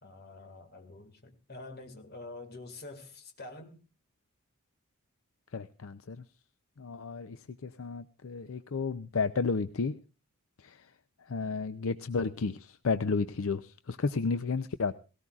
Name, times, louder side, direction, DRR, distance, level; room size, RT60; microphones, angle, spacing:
voice 1, 0.0-3.8, left 2 dB, 45° left, 2.0 m, -47 dB
voice 2, 5.5-6.2 6.8-10.0 10.6-10.9 11.2-14.9, left 4 dB, 70° left, 0.6 m, -32 dB
18.0 x 17.5 x 2.4 m
head